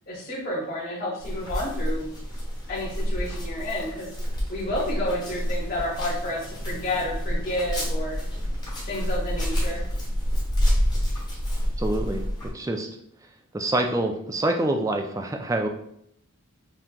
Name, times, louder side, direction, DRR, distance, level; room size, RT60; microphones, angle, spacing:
voice 1, 0.1-2.1 2.7-4.1 4.5-8.2 8.9-9.8, left 1 dB, 45° left, -7 dB, 1.5 m, -30 dB
sound 1, 1.2-12.5, equal, 20° left, 1.1 m, -28 dB
voice 2, 11.8-12.2 12.5-12.9 13.5-15.7, right 1 dB, 15° right, 3 dB, 0.3 m, -26 dB
5.7 x 2.8 x 2.3 m, 0.72 s
head